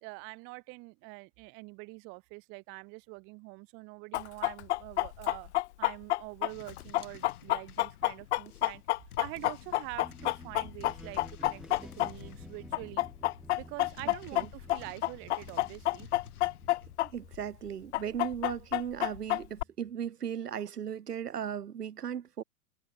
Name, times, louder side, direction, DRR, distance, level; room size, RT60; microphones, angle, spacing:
voice 1, 0.0-5.5 5.8-8.8 9.2-13.1 13.6-16.1, right 29 dB, 25° right, 0.6 m, -45 dB
Chicken rooster, 4.1-12.4 12.7-17.1 17.3-17.4 17.9-19.6, left 16 dB, 50° left, 0.4 m, -29 dB
sound 1, 6.5-17.0, left 10 dB, 70° left, 3.8 m, -53 dB
sound 2, 10.0-20.1, right 1 dB, ahead, 5.1 m, -53 dB
voice 2, 14.0-14.5 17.0-22.4, right 8 dB, 80° right, 1.3 m, -37 dB
open air
hypercardioid pair, 110°, 46 cm